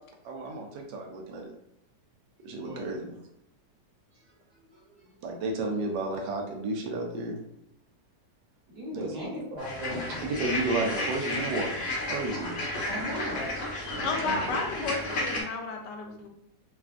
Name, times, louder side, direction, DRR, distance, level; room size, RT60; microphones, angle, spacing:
voice 1, 0.2-1.5 2.4-3.2 5.2-7.4 8.9-9.1 10.2-11.8 12.1-12.6 14.0-14.6, right 2 dB, 80° right, 2 dB, 1.2 m, -32 dB
voice 2, 8.7-10.3 12.8-13.5, equal, 65° right, -4 dB, 1.4 m, -36 dB
sound 1, 9.6-15.4, left 1 dB, 50° left, 0.9 m, -33 dB
voice 3, 14.0-16.3, left 4 dB, 85° left, 3 dB, 1.2 m, -32 dB
3.3 x 2.3 x 2.4 m, 0.78 s
omnidirectional pair, 1.8 m